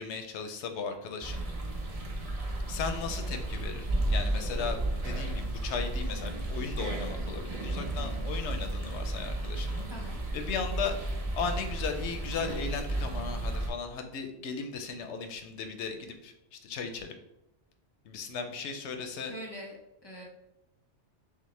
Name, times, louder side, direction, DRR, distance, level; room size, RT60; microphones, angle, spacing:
voice 1, 0.0-1.4 2.7-9.8 10.3-10.9 11.3-17.1 18.0-19.3, left 5 dB, 85° left, 6 dB, 0.9 m, -36 dB
sound 1, 1.2-13.7, right 1 dB, 40° right, 0.6 m, -33 dB
voice 2, 8.0-8.3 9.9-10.2 19.2-19.8 20.0-20.2, equal, 25° left, -1 dB, 0.7 m, -43 dB
5.8 x 2.1 x 3.2 m, 0.87 s
omnidirectional pair, 1.2 m